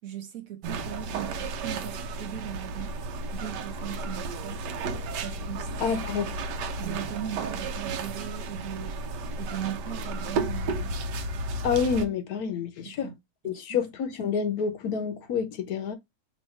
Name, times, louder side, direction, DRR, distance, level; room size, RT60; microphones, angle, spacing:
voice 1, 0.0-2.9 3.3-4.7 5.2-5.7 6.8-9.0 9.4-10.9 12.8-13.2 13.4-13.8, right 10 dB, 65° right, 1.0 m, -38 dB
sound 1, 0.6-12.0, right 3 dB, 90° right, 1.3 m, -33 dB
voice 2, 5.8-6.2 11.6-13.1 13.4-16.0, left 6 dB, 65° left, 1.1 m, -28 dB
5.4 x 2.7 x 3.1 m
omnidirectional pair, 1.8 m